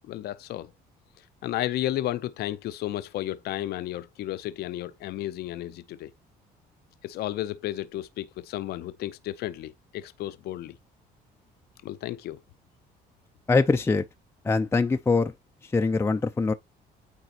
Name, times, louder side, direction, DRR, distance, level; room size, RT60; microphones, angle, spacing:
voice 1, 0.1-0.7 1.4-6.1 7.0-10.8 11.8-12.4, left 14 dB, 70° left, 0.7 m, -33 dB
voice 2, 13.5-14.1 14.4-15.3 15.6-16.5, left 3 dB, 15° left, 0.5 m, -23 dB
9.2 x 3.6 x 2.8 m
cardioid pair, 110°, 17 cm